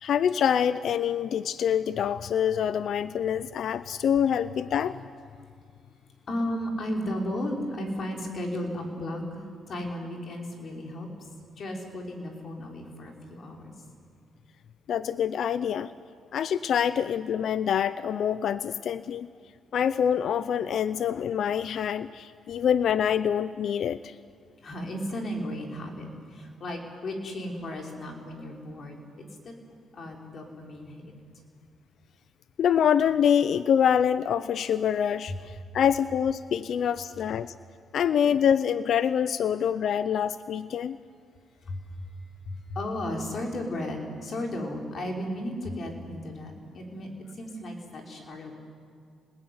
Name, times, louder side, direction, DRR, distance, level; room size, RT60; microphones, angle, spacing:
voice 1, 0.0-5.0 14.9-15.9 16.3-19.3 19.7-24.1 32.6-37.5 37.9-41.0, left 8 dB, 65° left, 14 dB, 0.7 m, -25 dB
voice 2, 6.3-11.1 11.6-13.7 24.6-29.5 29.9-31.1 41.7-42.0 42.4-47.1 47.3-48.5, left 1 dB, 50° left, 1 dB, 5.6 m, -34 dB
28.5 x 20.0 x 9.6 m, 2.2 s
cardioid pair, 90°, 0 cm